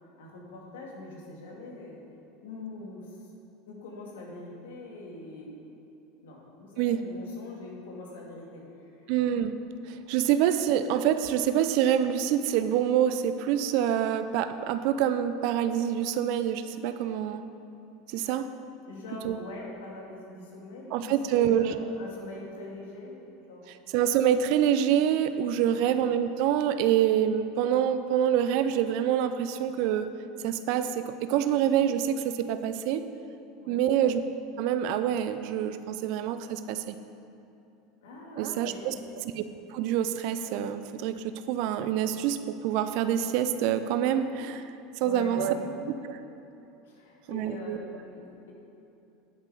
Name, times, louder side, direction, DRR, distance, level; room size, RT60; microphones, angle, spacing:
voice 1, 0.2-2.0 2.4-3.3 3.7-5.6 6.2-9.3 18.1-18.3 18.9-23.1 23.5-23.7 25.7-26.0 33.6-33.8 38.0-39.0 45.0-45.8 46.8-48.5, left 2 dB, 75° left, -2 dB, 2.3 m, -43 dB
voice 2, 9.1-9.6 9.9-17.4 18.1-18.5 19.2-19.4 20.9-21.7 23.9-30.1 30.4-33.0 33.7-34.2 34.6-36.9 38.4-38.9 39.2-39.4 39.7-42.4 42.6-44.6 45.0-45.5 46.0-46.1 47.3-47.8, right 10 dB, 60° right, 10 dB, 0.5 m, -26 dB
9.9 x 8.1 x 4.8 m, 2.9 s
hypercardioid pair, 85°, 0 cm